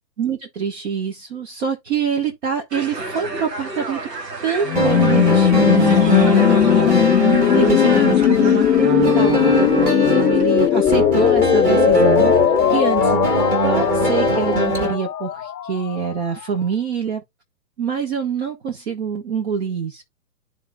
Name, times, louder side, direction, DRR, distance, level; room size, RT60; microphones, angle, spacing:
voice 1, 0.2-4.0 4.4-6.5 7.5-12.4 12.7-17.2 17.8-20.0, right 6 dB, 40° right, 1.4 m, -25 dB
sound 1, 2.7-10.4, right 3 dB, 85° right, 1.7 m, -31 dB
sound 2, 4.7-16.4, left 10 dB, 75° left, 0.7 m, -18 dB
sound 3, 4.7-15.0, right 2 dB, 15° right, 1.8 m, -21 dB
12.0 x 4.1 x 2.3 m
hypercardioid pair, 140°, 48 cm